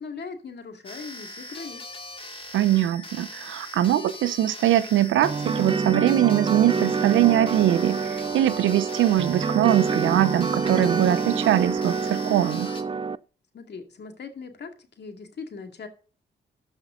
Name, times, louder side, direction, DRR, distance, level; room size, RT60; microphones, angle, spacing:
voice 1, 0.0-1.8 13.5-15.9, left 5 dB, 60° left, 2.3 m, -39 dB
sound 1, 0.8-12.8, left 1 dB, 25° left, 2.0 m, -41 dB
voice 2, 2.5-12.7, right 12 dB, 80° right, 0.8 m, -22 dB
sound 2, 5.2-13.2, right 5 dB, 25° right, 0.5 m, -27 dB
13.0 x 5.6 x 3.9 m
supercardioid pair, 60°, 20 cm